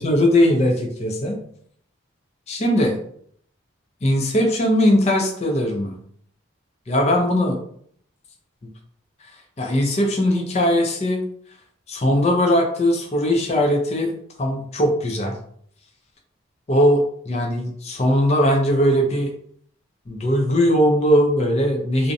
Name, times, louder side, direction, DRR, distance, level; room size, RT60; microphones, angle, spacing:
voice 1, 0.0-1.4 2.5-3.0 4.0-6.0 6.9-7.6 9.6-11.2 11.9-14.1 14.4-15.4 16.7-19.3 20.1-22.1, equal, 30° left, 2 dB, 0.4 m, -19 dB
2.6 x 2.1 x 2.5 m, 0.63 s
head